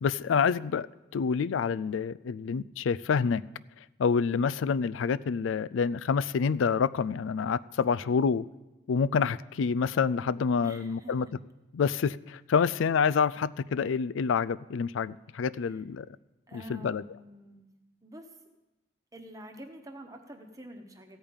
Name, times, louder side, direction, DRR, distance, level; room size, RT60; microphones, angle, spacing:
voice 1, 0.0-0.9 1.1-3.4 4.0-8.4 8.9-11.3 11.7-16.1 16.5-17.0, left 6 dB, 85° left, 19 dB, 0.4 m, -27 dB
voice 2, 10.6-11.3 15.7-15.8 16.5-17.7 18.0-18.3 19.1-21.2, equal, 15° right, 5 dB, 1.1 m, -47 dB
15.5 x 5.2 x 8.8 m, 1.1 s
head